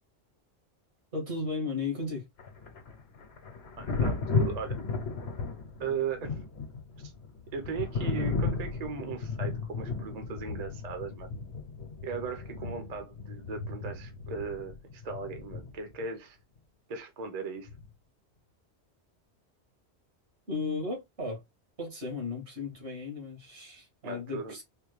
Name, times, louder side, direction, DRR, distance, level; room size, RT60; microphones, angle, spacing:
voice 1, 1.1-2.2 20.5-21.4 21.8-24.6, left 3 dB, 75° right, 2.1 m, -35 dB
Thunder, 2.4-16.0 17.7-17.9, left 4 dB, 70° left, 1.1 m, -35 dB
voice 2, 3.8-4.8 5.8-6.4 7.0-7.1 7.5-11.3 12.0-16.4 16.9-17.7 24.0-24.6, right 5 dB, 40° right, 0.8 m, -37 dB
4.2 x 2.3 x 3.1 m
omnidirectional pair, 1.1 m